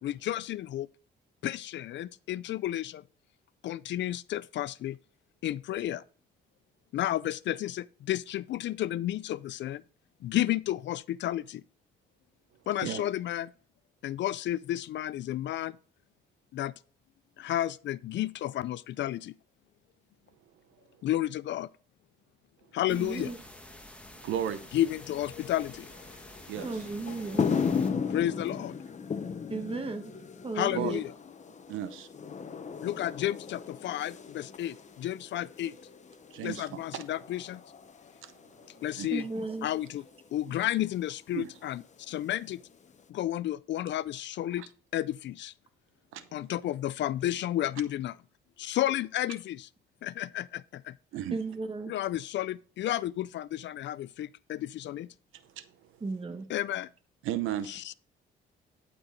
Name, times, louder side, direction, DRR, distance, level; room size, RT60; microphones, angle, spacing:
voice 1, 0.0-0.9 1.4-3.0 3.6-5.0 5.4-6.0 6.9-9.8 10.2-11.6 12.7-13.5 14.0-15.8 16.5-16.7 17.4-19.3 21.0-21.7 22.7-23.3 24.7-25.9 28.1-28.7 30.6-31.1 32.8-35.7 36.4-37.6 38.8-39.2 39.6-40.0 40.3-42.6 43.1-45.5 46.3-48.2 48.6-49.7 50.0-51.0 51.9-55.1 56.5-56.9 57.7-57.9, left 13 dB, 65° left, 0.4 m, -32 dB
sound 1, 22.9-27.9, left 1 dB, 5° left, 1.3 m, -49 dB
voice 2, 22.9-23.4 26.6-27.5 29.5-30.1 30.4-31.0 39.1-39.7 51.3-51.9 56.0-56.5, right 3 dB, 30° right, 1.5 m, -35 dB
voice 3, 24.2-24.6 26.5-26.7 30.7-30.9 31.7-32.1 36.3-36.7 36.9-37.0 38.2-38.3 39.0-39.1 40.5-40.6 41.3-41.5 44.6-44.7 46.1-46.2 51.1-51.4 55.6-55.7 57.2-57.7, right 10 dB, 85° right, 0.8 m, -33 dB
sound 2, 24.4-43.0, left 6 dB, 35° left, 0.9 m, -37 dB
11.5 x 4.6 x 3.9 m
cardioid pair, 90°, 20 cm